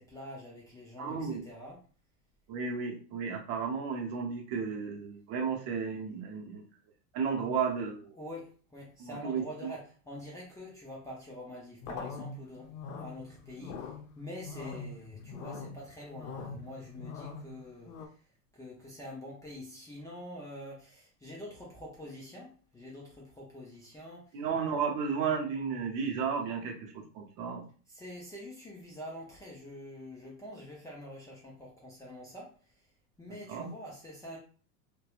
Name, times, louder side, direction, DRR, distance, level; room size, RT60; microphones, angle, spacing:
voice 1, 0.0-1.8 8.1-13.9 14.2-18.0 18.5-24.4 27.9-32.5 33.2-34.4, left 1 dB, 10° left, -6 dB, 0.4 m, -46 dB
voice 2, 1.0-1.5 2.5-6.6 7.1-8.1 9.0-9.7 24.3-27.6 33.3-33.7, right 6 dB, 50° right, 2 dB, 0.7 m, -33 dB
sound 1, 11.8-18.1, left 4 dB, 75° left, 0.6 m, -43 dB
2.7 x 2.2 x 2.4 m, 0.40 s
hypercardioid pair, 110°, 46 cm